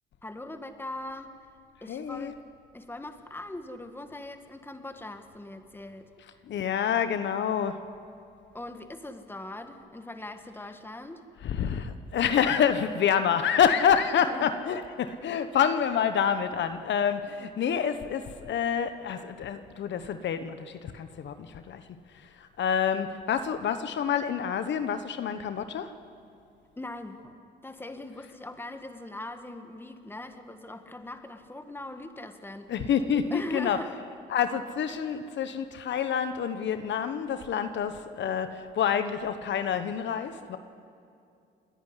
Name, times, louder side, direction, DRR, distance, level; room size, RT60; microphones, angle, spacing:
voice 1, 0.2-1.3 1.8-2.4 2.7-6.4 8.5-11.2 14.1-14.5 26.8-27.4 27.6-32.9 33.3-34.0, left 1 dB, 10° left, 8 dB, 1.6 m, -41 dB
voice 2, 1.9-2.3 6.5-7.8 11.4-21.8 22.4-25.9 32.7-33.8 34.3-40.6, left 8 dB, 65° left, 10 dB, 1.1 m, -27 dB
29.5 x 10.5 x 9.8 m, 2.5 s
cardioid pair, 90°, 20 cm